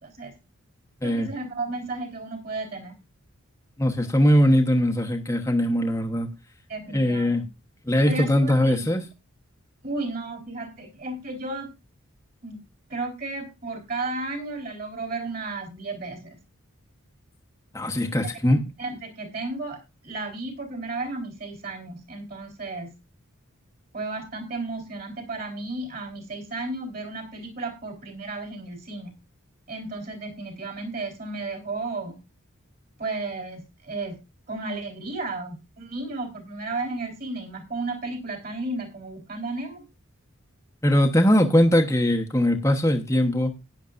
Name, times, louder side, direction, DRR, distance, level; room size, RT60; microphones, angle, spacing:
voice 1, 0.0-0.3 1.0-3.0 6.7-7.5 8.1-8.8 9.8-11.7 12.4-12.6 12.9-16.4 17.9-18.3 18.8-19.8 20.0-22.9 23.9-29.1 29.7-32.2 33.0-34.2 34.5-39.8, right 2 dB, 40° right, 3 dB, 3.9 m, -33 dB
voice 2, 3.8-6.3 6.9-7.4 7.8-9.0 17.7-18.6 40.8-43.5, equal, 15° left, 2 dB, 1.1 m, -21 dB
16.5 x 10.0 x 2.6 m, 0.26 s
head